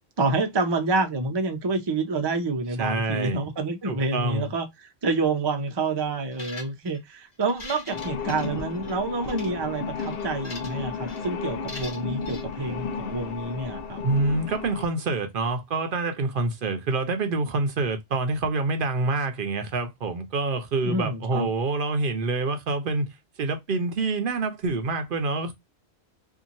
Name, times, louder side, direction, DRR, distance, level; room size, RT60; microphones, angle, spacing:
voice 1, 0.2-14.0 20.8-21.5, right 3 dB, 35° right, 0.5 m, -28 dB
voice 2, 2.8-3.4 3.8-4.5 14.0-25.5, right 3 dB, 60° right, 0.7 m, -27 dB
sound 1, 6.3-7.0 7.4-8.9 9.2-9.5 10.0-10.8 11.1-11.3 11.7-12.4, left 2 dB, 40° left, 1.1 m, -41 dB
sound 2, 7.9-14.9, left 5 dB, 65° left, 0.8 m, -33 dB
2.8 x 2.5 x 2.5 m
omnidirectional pair, 1.1 m